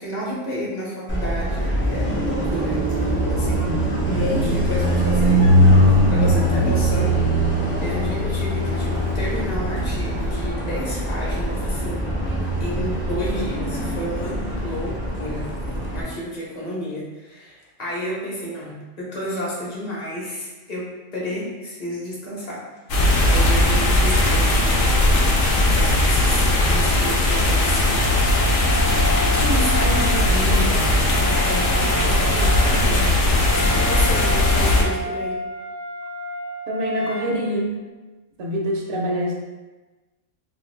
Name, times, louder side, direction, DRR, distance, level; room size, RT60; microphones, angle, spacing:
voice 1, 0.0-2.8 3.3-5.8 6.1-7.3 7.8-12.2 12.6-15.5 15.9-22.6 23.3-28.1 29.3-33.1 33.6-35.4, equal, 40° left, -5 dB, 0.7 m, -31 dB
Car passing by, 1.1-16.0, equal, 20° left, 0.3 m, -21 dB
sound 1, 22.9-34.8, left 1 dB, 75° left, 0.9 m, -18 dB
Wind instrument woodwind instrument, 27.3-37.3, equal, 90° left, 1.0 m, -31 dB
voice 2, 36.7-37.7 38.4-39.4, equal, 65° right, 0 dB, 0.7 m, -25 dB
2.5 x 2.4 x 3.1 m, 1.2 s
omnidirectional pair, 1.3 m